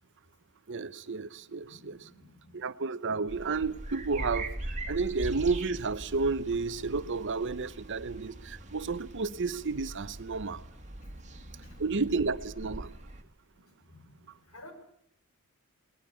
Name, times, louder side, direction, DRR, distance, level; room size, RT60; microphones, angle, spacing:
voice 1, 0.7-2.1 2.5-10.6 11.8-12.9, right 4 dB, 55° right, 0.8 m, -32 dB
voice 2, 1.7-2.6 10.5-10.6 11.0-11.9 13.6-14.7, left 1 dB, 80° left, 6.0 m, -55 dB
sound 1, 3.3-13.2, right 1 dB, 35° right, 1.9 m, -41 dB
22.0 x 20.0 x 8.4 m
head